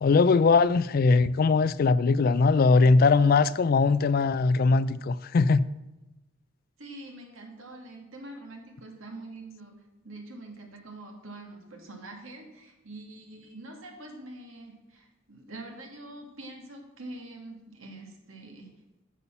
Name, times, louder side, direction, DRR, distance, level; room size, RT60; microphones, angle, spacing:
voice 1, 0.0-5.6, left 4 dB, 45° left, 0.3 m, -21 dB
voice 2, 6.8-18.7, right 2 dB, 80° right, 2.1 m, -45 dB
8.3 x 6.9 x 7.2 m
head